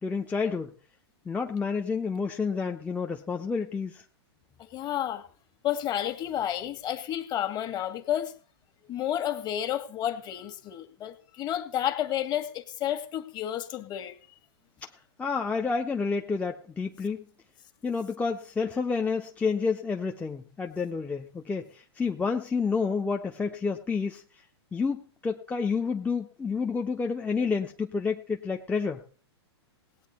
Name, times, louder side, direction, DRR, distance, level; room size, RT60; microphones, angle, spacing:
voice 1, 0.0-0.7 1.3-4.0 14.8-14.9 15.2-17.2 17.8-24.2 24.7-29.0, left 5 dB, 10° left, 2 dB, 0.8 m, -29 dB
voice 2, 4.6-5.2 5.6-8.3 8.9-14.1, left 11 dB, 30° left, 8 dB, 1.8 m, -31 dB
18.0 x 9.0 x 4.3 m, 0.42 s
hypercardioid pair, 120°, 14 cm